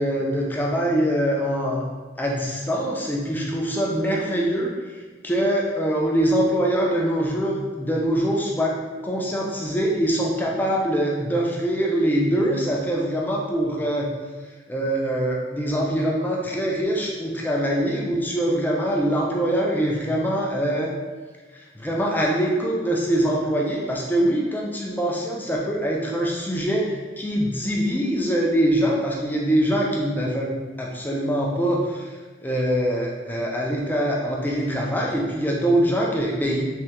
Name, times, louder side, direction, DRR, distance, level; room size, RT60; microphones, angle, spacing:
voice 1, 0.0-1.8 2.2-14.1 14.7-20.9 21.7-30.5 30.8-32.1 32.4-36.6, right 1 dB, 10° left, -2 dB, 0.3 m, -23 dB
3.3 x 2.2 x 2.8 m, 1.4 s
head